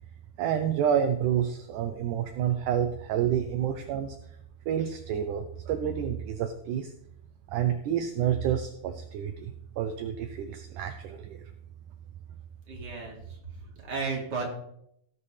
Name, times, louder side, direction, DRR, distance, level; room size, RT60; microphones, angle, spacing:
voice 1, 0.4-4.2 4.7-6.9 7.5-11.4, right 9 dB, 75° right, 7 dB, 1.9 m, -29 dB
voice 2, 12.7-14.4, right 4 dB, 30° right, -2 dB, 2.7 m, -34 dB
17.5 x 7.6 x 3.4 m, 0.73 s
omnidirectional pair, 4.3 m